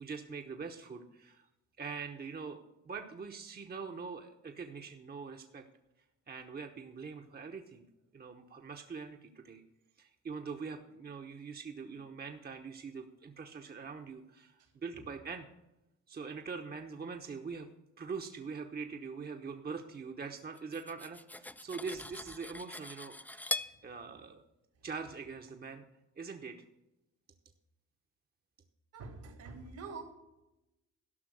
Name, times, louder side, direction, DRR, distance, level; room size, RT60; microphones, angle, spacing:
voice 1, 0.0-1.5 1.8-5.6 6.3-7.9 8.1-9.6 10.0-15.5 16.1-17.7 18.0-23.5 23.8-24.4 24.8-25.8 26.2-26.6, right 5 dB, 30° right, 4 dB, 1.0 m, -43 dB
voice 2, 14.6-15.0 23.6-23.9 24.8-24.9 28.9-30.0, right 4 dB, 75° right, 4 dB, 3.2 m, -47 dB
Cutlery silverware, 20.6-23.8, left 2 dB, 5° left, 0.5 m, -41 dB
12.5 x 5.7 x 7.9 m, 0.93 s
cardioid pair, 90°, 30 cm